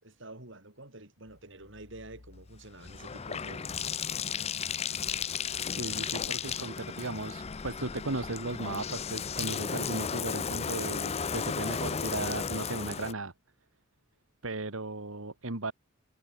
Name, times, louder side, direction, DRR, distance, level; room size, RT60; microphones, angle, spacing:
voice 1, 0.0-3.8, right 2 dB, 65° right, 6.8 m, -48 dB
Bathtub (filling or washing), 1.8-13.1, left 6 dB, 30° left, 0.6 m, -34 dB
voice 2, 5.7-13.3 14.4-15.7, right 2 dB, 85° right, 2.3 m, -36 dB
head